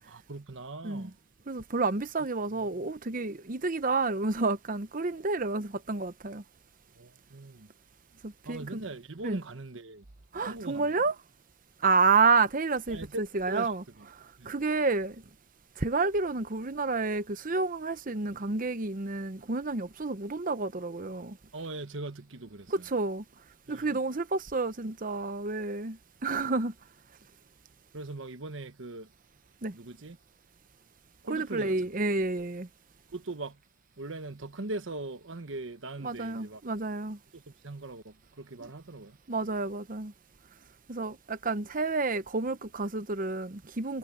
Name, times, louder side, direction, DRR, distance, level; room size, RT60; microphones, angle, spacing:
voice 1, 0.1-1.1 2.2-2.3 6.9-7.7 8.4-10.0 10.5-10.9 12.9-13.7 14.0-14.1 14.4-14.5 21.5-22.9 23.7-24.0 27.9-29.1 29.7-30.2 31.2-31.9 33.1-33.6 34.0-36.6 37.3-39.2, right 2 dB, 75° right, 1.2 m, -40 dB
voice 2, 1.5-6.4 8.2-8.8 9.2-9.4 10.3-11.1 11.8-13.8 14.1-15.2 15.8-21.4 22.7-23.2 23.7-26.7 29.6-29.7 31.3-32.7 36.0-37.2 39.3-40.1 40.9-44.0, right 3 dB, 45° right, 0.9 m, -29 dB
head